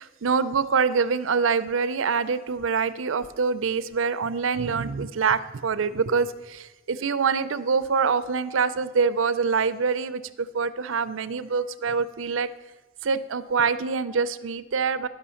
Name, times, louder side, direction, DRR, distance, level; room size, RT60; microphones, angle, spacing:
voice 1, 0.0-12.5 13.0-15.1, right 5 dB, 70° right, 13 dB, 0.5 m, -25 dB
11.5 x 5.6 x 7.0 m, 1.1 s
head